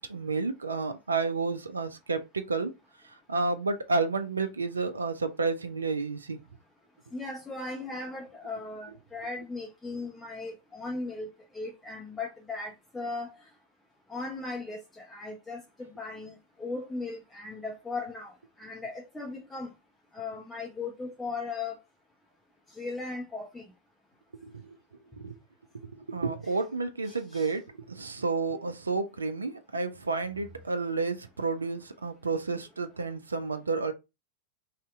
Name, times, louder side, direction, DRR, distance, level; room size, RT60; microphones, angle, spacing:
voice 1, 0.0-2.7 3.3-6.4 24.4-24.8 25.1-25.4 26.0-33.9, right 3 dB, 75° right, 0.3 m, -31 dB
voice 2, 7.1-13.4 14.1-18.3 18.6-19.7 20.1-21.8 22.8-23.6 26.4-26.6 27.0-27.5, left 3 dB, 10° left, 0.5 m, -37 dB
2.7 x 2.1 x 3.4 m
figure-of-eight pair, 90°, 0 cm